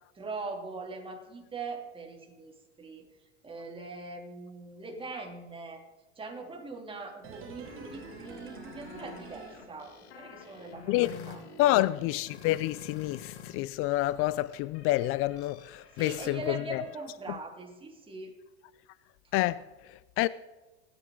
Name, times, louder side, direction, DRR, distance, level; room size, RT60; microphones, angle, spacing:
voice 1, 0.1-3.1 3.4-5.8 6.2-11.9 15.9-18.3, right 3 dB, 15° right, 2.8 m, -42 dB
sound 1, 7.2-10.4 10.6-10.7, right 5 dB, 40° right, 2.4 m, -47 dB
sound 2, 7.3-13.5 13.8-17.1, left 7 dB, 80° left, 2.6 m, -49 dB
voice 2, 11.6-16.8 19.3-20.3, left 16 dB, 45° left, 0.4 m, -28 dB
24.5 x 9.0 x 3.8 m
hypercardioid pair, 110°, 32 cm